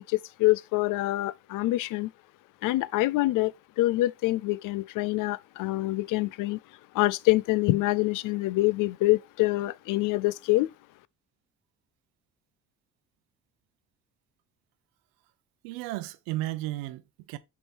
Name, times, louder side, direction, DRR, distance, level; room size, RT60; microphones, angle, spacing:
voice 1, 0.0-2.1 2.6-6.6 6.9-10.7, left 18 dB, 70° left, 0.4 m, -26 dB
voice 2, 15.6-17.4, right 16 dB, 90° right, 0.7 m, -34 dB
5.9 x 3.7 x 4.3 m
supercardioid pair, 70°, 33 cm